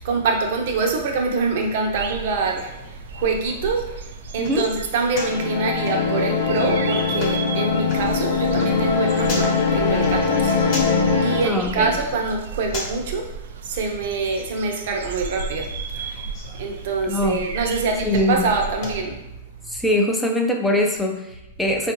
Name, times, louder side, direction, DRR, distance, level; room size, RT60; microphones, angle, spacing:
voice 1, 0.0-19.2, right 4 dB, 55° right, 1 dB, 0.7 m, -25 dB
sound 1, 1.5-19.4, left 2 dB, 40° left, 0.9 m, -40 dB
sound 2, 1.9-19.0, right 5 dB, 75° right, 0.4 m, -35 dB
sound 3, 5.1-11.5, left 5 dB, 60° left, 0.5 m, -21 dB
voice 2, 11.4-12.0 17.1-17.4 18.0-18.5 19.7-21.9, left 1 dB, 5° left, 1 dB, 0.4 m, -22 dB
4.3 x 2.4 x 3.0 m, 0.90 s
hypercardioid pair, 150°, 0 cm